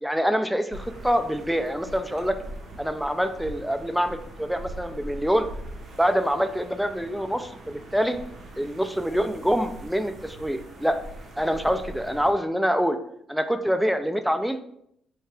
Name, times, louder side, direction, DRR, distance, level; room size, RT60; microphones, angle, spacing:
voice 1, 0.0-2.4 2.8-5.5 6.0-8.2 8.6-11.0 11.4-13.0 13.3-14.6, equal, ahead, 8 dB, 0.3 m, -25 dB
sound 1, 0.7-12.3, right 1 dB, 45° right, 0.8 m, -42 dB
4.3 x 2.8 x 3.2 m, 0.72 s
cardioid pair, 120°, 0 cm